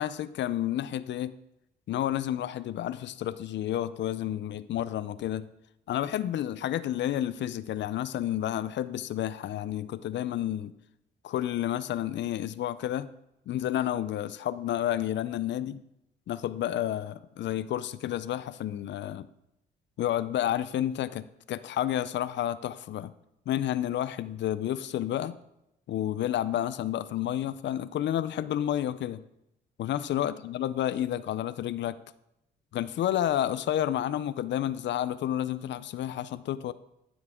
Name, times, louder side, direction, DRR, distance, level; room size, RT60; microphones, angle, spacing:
voice 1, 0.0-1.3 1.9-5.5 5.9-10.7 11.2-13.1 13.5-15.8 16.3-19.3 20.0-23.1 23.5-25.4 25.9-29.2 29.8-32.0 32.7-36.7, left 11 dB, 65° left, 15 dB, 0.5 m, -30 dB
12.5 x 7.3 x 3.6 m, 0.85 s
cardioid pair, 90°, 20 cm